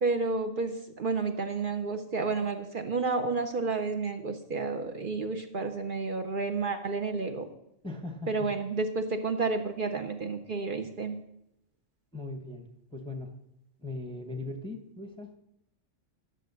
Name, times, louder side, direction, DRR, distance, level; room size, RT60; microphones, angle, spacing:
voice 1, 0.0-7.5 8.3-11.2, right 3 dB, 50° right, 6 dB, 0.8 m, -31 dB
voice 2, 7.8-8.5 12.1-13.3 13.8-15.4, left 2 dB, 5° left, 5 dB, 0.7 m, -39 dB
10.5 x 6.5 x 6.7 m, 0.81 s
omnidirectional pair, 1.2 m